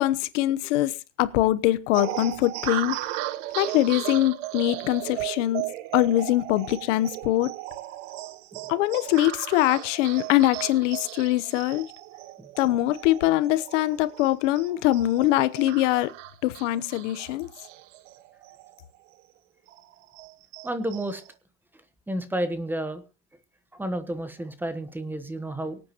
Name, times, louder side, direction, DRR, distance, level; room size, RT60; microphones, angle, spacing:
voice 1, 0.0-3.0 3.5-5.6 5.9-7.5 8.7-11.9 12.6-16.1 16.4-17.5, left 15 dB, 80° left, 1.0 m, -23 dB
sound 1, 1.9-18.8 19.2-19.3 19.7-21.3, right 16 dB, 85° right, 1.2 m, -36 dB
voice 2, 20.6-21.2 22.1-23.0 23.7-25.8, right 1 dB, 5° right, 1.2 m, -31 dB
23.5 x 8.7 x 3.0 m
supercardioid pair, 150°, 36 cm